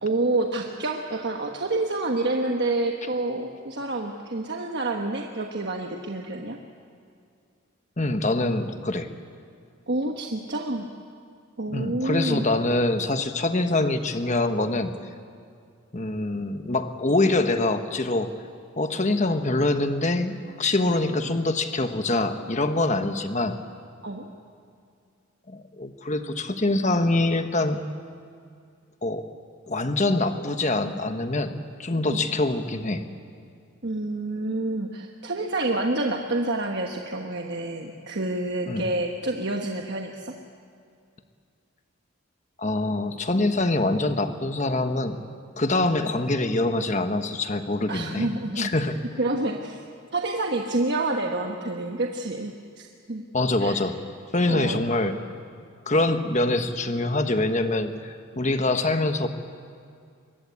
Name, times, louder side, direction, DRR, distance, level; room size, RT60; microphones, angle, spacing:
voice 1, 0.0-6.6 9.9-10.9 11.6-12.5 24.0-24.3 32.1-32.2 33.8-40.3 47.9-48.7 49.2-49.8 50.1-53.2 53.6-53.9 54.5-54.8, right 2 dB, 50° right, 2 dB, 1.3 m, -28 dB
voice 2, 8.0-9.1 11.7-14.9 15.9-18.3 18.8-23.6 25.5-27.8 29.0-29.3 29.7-33.0 38.7-38.8 42.6-45.2 45.6-48.3 48.6-49.0 53.3-53.9 54.3-55.1 55.9-59.3, left 2 dB, 35° left, 8 dB, 1.2 m, -24 dB
23.0 x 21.0 x 8.4 m, 2.3 s
head